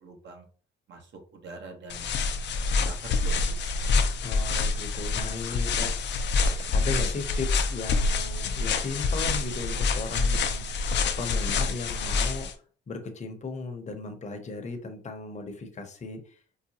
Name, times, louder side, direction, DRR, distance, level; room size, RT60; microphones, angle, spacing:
voice 1, 0.0-0.4 0.9-1.0 1.3-3.6 3.9-4.1, right 3 dB, 65° right, 3 dB, 1.1 m, -45 dB
sound 1, 1.9-12.5, left 4 dB, 65° left, 0.5 m, -27 dB
voice 2, 4.2-10.9 11.2-12.5 12.9-16.4, left 3 dB, 35° left, 4 dB, 0.8 m, -36 dB
4.8 x 2.2 x 2.8 m, 0.42 s
cardioid pair, 90°, 20 cm